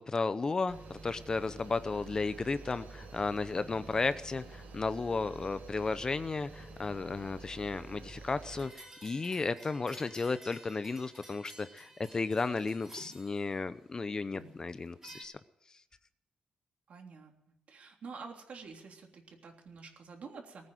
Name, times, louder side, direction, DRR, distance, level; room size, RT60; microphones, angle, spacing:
voice 1, 0.0-15.3, left 4 dB, 25° left, 13 dB, 0.6 m, -34 dB
sound 1, 0.7-8.7, right 3 dB, 90° right, 4.9 m, -49 dB
sound 2, 8.4-13.8 14.3-15.2, right 1 dB, 15° right, 5.1 m, -53 dB
voice 2, 16.9-17.3 17.7-20.7, right 4 dB, 55° right, 2 dB, 3.3 m, -48 dB
20.0 x 9.3 x 7.6 m, 0.80 s
wide cardioid pair, 155°, 3 cm